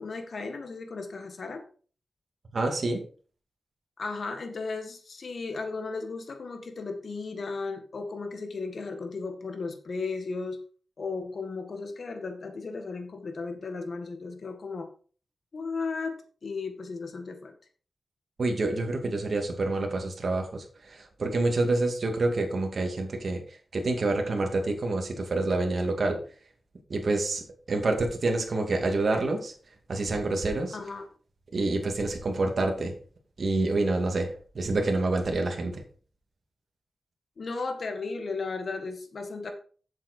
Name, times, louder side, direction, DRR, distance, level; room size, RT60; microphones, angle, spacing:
voice 1, 0.0-1.6 4.0-10.6 11.0-14.9 15.5-16.2 16.4-17.5 30.7-31.1 37.4-39.5, left 4 dB, 60° left, 5 dB, 1.9 m, -35 dB
voice 2, 2.5-3.0 18.4-23.4 23.7-26.2 26.9-29.5 29.9-30.8 31.5-32.9 33.4-35.8, right 2 dB, 60° right, 2 dB, 2.4 m, -27 dB
7.5 x 7.4 x 4.5 m, 0.41 s
wide cardioid pair, 80°, 0 cm